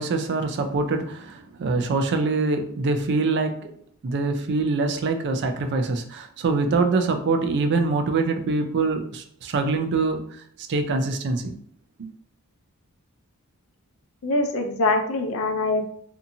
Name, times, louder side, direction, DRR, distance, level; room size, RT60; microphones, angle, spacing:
voice 1, 0.0-3.7 4.0-11.5 12.0-12.1, right 3 dB, 50° right, 7 dB, 0.4 m, -24 dB
voice 2, 14.2-15.8, left 2 dB, 65° left, 5 dB, 0.5 m, -23 dB
2.6 x 2.4 x 2.7 m, 0.65 s
head